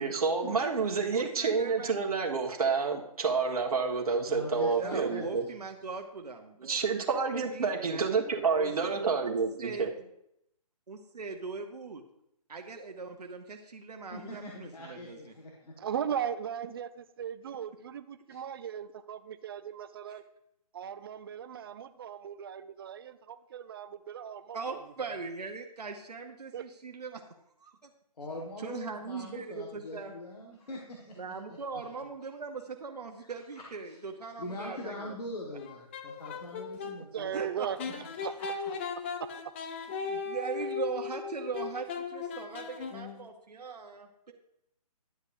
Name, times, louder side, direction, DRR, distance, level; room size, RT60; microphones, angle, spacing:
voice 1, 0.0-5.4 6.6-9.9, right 5 dB, 65° right, 0 dB, 1.5 m, -29 dB
voice 2, 1.1-2.0 4.8-6.8 7.3-8.2 8.6-10.1 10.9-12.0 12.5-15.3 20.1-20.2 24.5-27.2 28.6-30.1 31.2-35.1 37.3-37.7 40.0-44.3, right 4 dB, 85° right, 4 dB, 1.0 m, -40 dB
voice 3, 4.3-5.6 14.1-15.8 28.2-31.2 31.5-31.8 33.8-34.0 34.4-37.4 38.4-38.7, left 1 dB, 80° left, -1 dB, 1.8 m, -42 dB
voice 4, 15.8-20.2 20.7-25.1 26.5-26.6 37.1-37.8 38.2-38.3, right 8 dB, 35° right, 12 dB, 0.5 m, -38 dB
sound 1, 35.6-37.0 37.8-43.3, left 5 dB, 20° left, 0.4 m, -37 dB
11.5 x 8.1 x 2.6 m, 0.79 s
hypercardioid pair, 150°, 20 cm